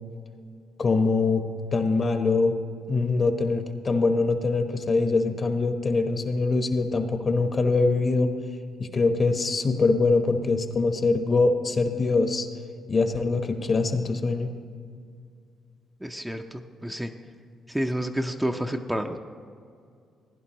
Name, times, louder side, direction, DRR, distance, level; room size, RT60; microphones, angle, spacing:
voice 1, 0.8-1.4 1.7-2.5 2.9-8.3 8.8-12.5 12.9-14.6, left 3 dB, 40° left, 7 dB, 1.0 m, -23 dB
voice 2, 16.0-17.1 17.7-19.2, equal, 5° right, 4 dB, 0.5 m, -29 dB
15.5 x 10.5 x 3.0 m, 2.3 s
cardioid pair, 90°, 0 cm